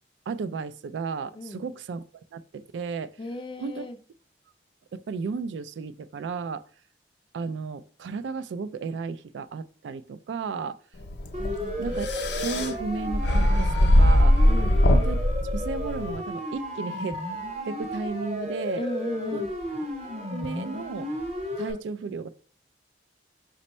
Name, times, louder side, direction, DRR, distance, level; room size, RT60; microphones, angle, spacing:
voice 1, 0.3-3.1 3.6-3.9 4.9-6.6 7.3-10.8 11.8-14.3 14.9-15.2 15.5-17.2 17.7-18.8 19.3-19.4 20.2-21.1 21.6-22.3, right 4 dB, 80° right, 0.3 m, -34 dB
voice 2, 3.2-4.0 11.4-12.0 14.5-14.8 18.8-19.5, left 2 dB, 30° left, 0.3 m, -36 dB
sound 1, 11.0-16.2, left 1 dB, 75° left, 0.6 m, -21 dB
Siren, 11.3-21.7, equal, 35° right, 0.9 m, -34 dB
5.1 x 2.2 x 4.1 m
head